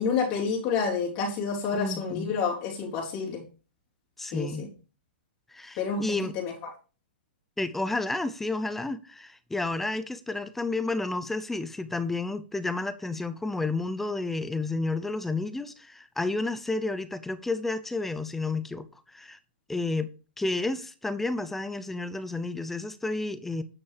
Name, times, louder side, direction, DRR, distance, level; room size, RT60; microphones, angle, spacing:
voice 1, 0.0-3.4 4.3-4.7 5.8-6.5, left 5 dB, 35° left, 3.5 m, -29 dB
voice 2, 1.8-2.4 4.2-4.7 5.5-6.3 7.6-18.9 19.1-19.4 19.7-20.1 20.4-23.6, left 2 dB, 5° left, 0.6 m, -31 dB
9.7 x 5.6 x 4.8 m
hypercardioid pair, 160°, 6 cm